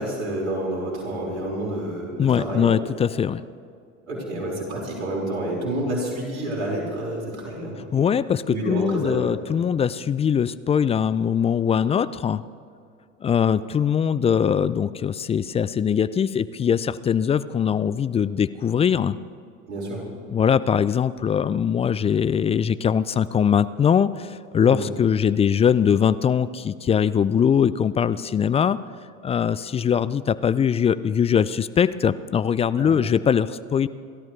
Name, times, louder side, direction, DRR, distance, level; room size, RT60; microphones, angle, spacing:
voice 1, 0.0-2.7 4.1-7.7 8.5-9.5 19.7-20.0 24.6-24.8 32.8-32.9, right 1 dB, 85° right, -3 dB, 5.1 m, -29 dB
voice 2, 2.2-3.4 7.9-12.4 13.2-19.1 20.3-28.8 29.2-33.9, left 7 dB, 15° left, 16 dB, 0.3 m, -21 dB
29.0 x 13.5 x 3.3 m, 2.3 s
hypercardioid pair, 80°, 39 cm